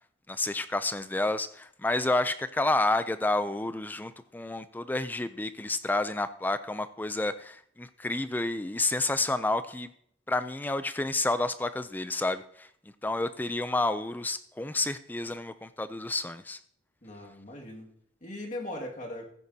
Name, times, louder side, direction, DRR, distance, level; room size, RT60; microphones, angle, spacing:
voice 1, 0.3-9.9 10.3-12.7 13.0-16.6, left 2 dB, 10° left, 12 dB, 0.3 m, -30 dB
voice 2, 17.0-17.9 18.2-19.3, left 1 dB, 40° left, 0 dB, 2.0 m, -39 dB
15.5 x 9.2 x 2.8 m, 0.66 s
head